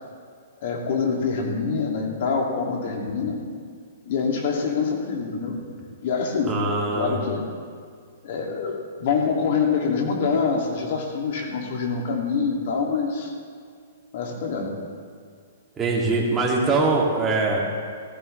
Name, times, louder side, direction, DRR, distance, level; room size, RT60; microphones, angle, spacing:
voice 1, 0.6-3.4 4.0-5.6 6.0-6.5 6.9-7.4 8.2-13.3 14.1-14.7, left 5 dB, 55° left, 0 dB, 2.6 m, -25 dB
voice 2, 6.4-7.2 15.8-17.6, right 3 dB, 15° right, -4 dB, 2.6 m, -22 dB
16.0 x 14.0 x 3.4 m, 2.1 s
hypercardioid pair, 145°, 0 cm